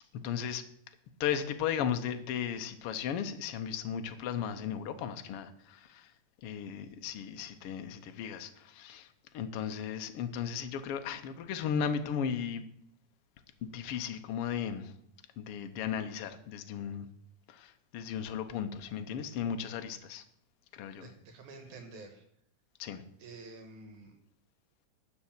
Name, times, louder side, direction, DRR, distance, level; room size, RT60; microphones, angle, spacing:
voice 1, 0.2-0.6 1.2-6.1 6.4-9.1 9.3-12.6 13.6-14.9 15.4-17.1 17.5-20.2 20.7-21.1 22.8-23.0, left 8 dB, 70° left, 8 dB, 1.4 m, -36 dB
voice 2, 21.0-22.2 23.2-24.2, right 3 dB, 70° right, 5 dB, 2.7 m, -49 dB
12.0 x 5.4 x 8.8 m, 0.70 s
omnidirectional pair, 3.6 m